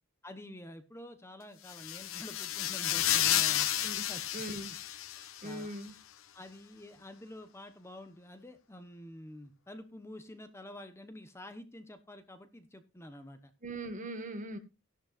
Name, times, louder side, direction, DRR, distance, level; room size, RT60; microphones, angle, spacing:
voice 1, 0.2-3.7 4.1-4.3 5.1-5.8 6.3-13.5, left 1 dB, 15° left, 8 dB, 1.0 m, -48 dB
sound 1, 1.7-5.6, left 12 dB, 75° left, 0.8 m, -31 dB
voice 2, 4.3-4.7 5.4-5.9 13.6-14.6, right 1 dB, 40° right, 7 dB, 1.7 m, -40 dB
15.0 x 11.5 x 2.5 m, 0.27 s
head